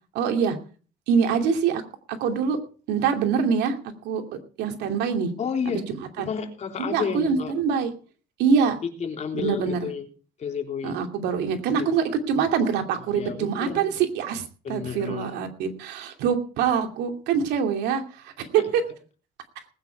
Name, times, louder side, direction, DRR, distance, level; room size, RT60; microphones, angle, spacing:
voice 1, 0.1-0.6 1.1-1.8 2.1-2.6 2.9-3.8 4.0-4.2 4.6-5.3 5.7-6.3 6.8-7.9 8.4-8.8 9.3-9.9 10.8-18.8, right 6 dB, 90° right, 5 dB, 2.7 m, -24 dB
voice 2, 5.4-5.9 6.2-7.5 8.8-10.1 10.4-11.0 11.8-11.9 13.1-13.9 14.6-15.3, left 6 dB, 40° left, 3 dB, 3.5 m, -31 dB
19.5 x 9.4 x 4.6 m, 0.39 s
cardioid pair, 110°, 17 cm